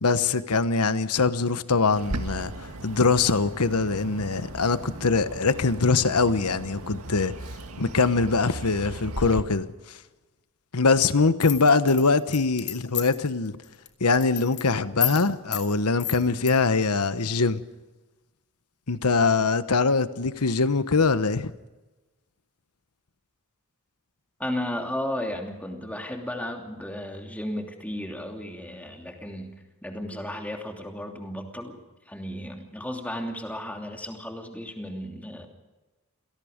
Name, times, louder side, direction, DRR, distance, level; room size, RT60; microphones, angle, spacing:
voice 1, 0.0-2.5 2.8-7.3 7.8-9.7 10.7-13.6 14.0-17.6 18.9-21.5, left 4 dB, 90° left, 1.1 m, -23 dB
Bird, 2.0-9.4, right 1 dB, 80° right, 1.8 m, -37 dB
sound 1, 11.4-13.3 13.6-13.9 14.1-14.6 15.0-15.2 15.5-15.7 16.0-16.5, left 13 dB, 50° left, 2.4 m, -30 dB
voice 2, 24.4-29.5 29.8-35.5, left 1 dB, 5° left, 2.9 m, -34 dB
28.0 x 18.0 x 5.2 m
head